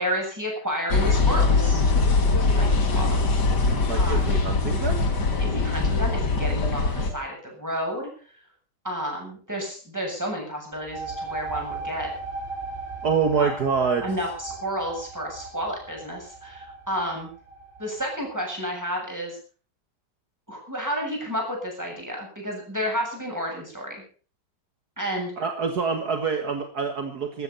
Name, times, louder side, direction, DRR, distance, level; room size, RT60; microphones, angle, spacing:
voice 1, 0.0-1.8 2.5-3.1 4.0-4.4 5.4-8.1 8.8-12.1 13.4-13.5 14.0-17.3 17.8-19.4 20.5-24.0 25.0-25.3, equal, 10° right, 0 dB, 7.7 m, -31 dB
sound 1, 0.9-7.1, left 3 dB, 65° left, 2.9 m, -22 dB
voice 2, 3.9-5.0 13.0-14.0 25.4-27.4, right 5 dB, 60° right, 5 dB, 2.2 m, -26 dB
sound 2, 10.7-18.2, right 3 dB, 30° right, 3.9 m, -37 dB
16.0 x 13.5 x 5.6 m, 0.41 s
omnidirectional pair, 1.9 m